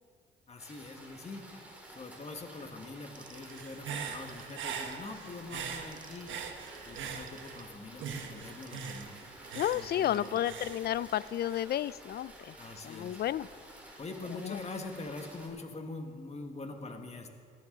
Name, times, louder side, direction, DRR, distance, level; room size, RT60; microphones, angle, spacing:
voice 1, 0.5-1.4 1.9-6.3 6.8-9.2 9.7-10.4 12.6-13.2 14.0-17.4, left 3 dB, 35° left, 4 dB, 1.7 m, -44 dB
sound 1, 0.6-15.5, right 1 dB, 5° right, 4.0 m, -52 dB
Telephone, 3.0-5.1 5.7-10.8, right 5 dB, 45° right, 1.4 m, -54 dB
Human voice / Breathing, 3.5-7.7 8.0-11.6, right 6 dB, 75° right, 1.4 m, -42 dB
voice 2, 9.5-12.5 12.8-13.5 14.4-14.6, left 11 dB, 55° left, 19 dB, 0.4 m, -32 dB
19.0 x 12.0 x 3.9 m, 2.2 s
cardioid pair, 90°, 20 cm